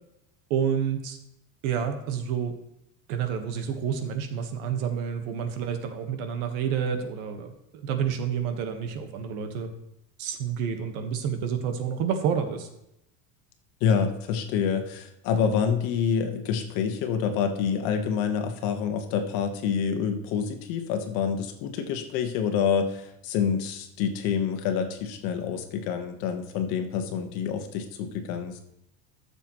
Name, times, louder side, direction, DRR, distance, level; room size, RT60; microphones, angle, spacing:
voice 1, 0.5-1.2 1.6-2.5 3.1-9.7 10.2-12.7, right 7 dB, 90° right, 7 dB, 1.4 m, -29 dB
voice 2, 13.8-28.6, left 7 dB, 60° left, 6 dB, 1.3 m, -27 dB
13.0 x 7.0 x 3.1 m, 0.83 s
cardioid pair, 175°, 40 cm